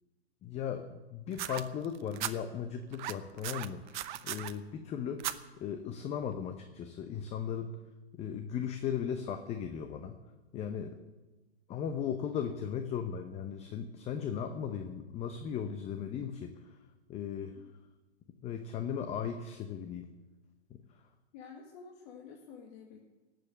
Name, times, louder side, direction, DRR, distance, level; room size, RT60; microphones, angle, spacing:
voice 1, 0.4-5.2 5.6-7.7 8.2-10.1 10.5-11.0 11.7-16.5 17.1-17.5 18.4-20.1, left 8 dB, 20° left, 7 dB, 0.8 m, -37 dB
sound 1, 1.3-2.3 2.9-4.5 5.2-5.4 6.3-6.4, right 13 dB, 45° right, 0.9 m, -37 dB
voice 2, 21.3-23.0, left 6 dB, 40° left, 0 dB, 2.0 m, -50 dB
18.0 x 7.9 x 7.7 m, 1.2 s
hypercardioid pair, 115°, 33 cm